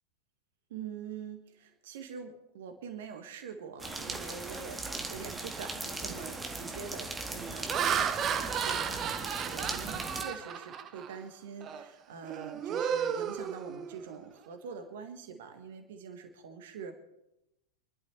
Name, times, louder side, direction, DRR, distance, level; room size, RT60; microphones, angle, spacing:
voice 1, 0.7-17.0, right 6 dB, 55° right, 6 dB, 1.7 m, -44 dB
sound 1, 3.8-10.2, right 2 dB, 10° right, 1.7 m, -38 dB
Laughter, 5.6-5.9 6.4-6.7 7.4-11.2 11.6-11.9 12.2-14.2, right 8 dB, 30° right, 0.9 m, -34 dB
28.5 x 12.0 x 3.3 m, 0.91 s
figure-of-eight pair, 90°, 0 cm